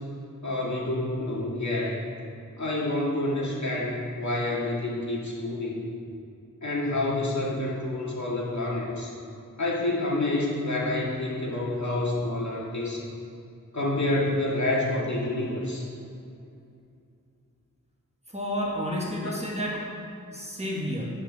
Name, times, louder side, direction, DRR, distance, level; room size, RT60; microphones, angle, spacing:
voice 1, 0.4-2.0 2.6-5.8 6.6-9.1 9.6-13.0 13.7-15.9 19.2-19.3, left 2 dB, 55° left, -5 dB, 2.1 m, -28 dB
voice 2, 18.3-19.8 20.3-21.1, equal, 20° right, -3 dB, 1.5 m, -30 dB
8.7 x 4.6 x 6.9 m, 2.5 s
wide cardioid pair, 80°, 34 cm